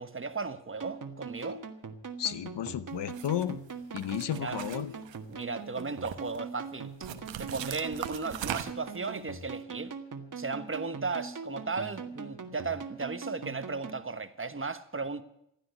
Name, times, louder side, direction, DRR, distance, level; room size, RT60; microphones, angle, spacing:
voice 1, 0.0-1.6 4.2-4.6 5.3-7.1 7.3-9.9 10.3-15.2, right 4 dB, 30° right, 1.3 m, -36 dB
sound 1, 0.8-14.0, right 4 dB, 45° right, 1.7 m, -42 dB
voice 2, 2.2-3.6 3.9-4.9, left 10 dB, 70° left, 0.9 m, -33 dB
sound 2, 3.1-3.4 4.0-5.4 5.8-6.4 7.0-9.0, right 10 dB, 80° right, 1.1 m, -39 dB
16.0 x 10.5 x 8.1 m
supercardioid pair, 50°, 44 cm